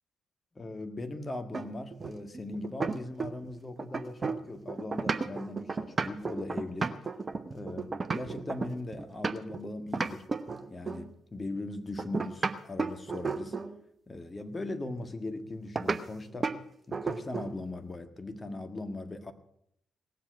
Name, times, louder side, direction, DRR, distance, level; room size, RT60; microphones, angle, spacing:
voice 1, 0.5-6.9 7.5-10.3 10.7-13.6 14.1-16.5 16.9-19.3, left 2 dB, 30° left, 8 dB, 1.6 m, -39 dB
sound 1, 1.5-3.5 3.8-9.6 9.9-11.1 12.0-13.8 15.7-16.0 16.4-16.6 16.9-17.6, right 4 dB, 35° right, 1.0 m, -33 dB
18.0 x 7.6 x 7.9 m, 0.74 s
figure-of-eight pair, 40°, 0 cm